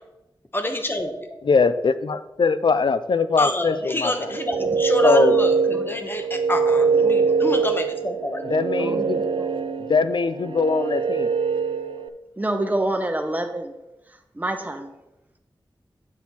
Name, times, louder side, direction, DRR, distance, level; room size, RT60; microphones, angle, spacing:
voice 1, 0.5-1.4 3.4-8.4, left 1 dB, 25° left, 6 dB, 1.0 m, -27 dB
voice 2, 1.5-4.3 5.0-5.4 8.5-9.2 9.9-11.3, left 4 dB, 65° left, 12 dB, 0.4 m, -21 dB
sound 1, 4.2-12.1, right 5 dB, 70° right, 0.5 m, -23 dB
voice 3, 5.7-6.1 8.8-9.5 12.4-13.7 14.3-14.9, right 1 dB, 20° right, 5 dB, 0.9 m, -27 dB
7.4 x 6.1 x 4.3 m, 0.94 s
wide cardioid pair, 85°, 9 cm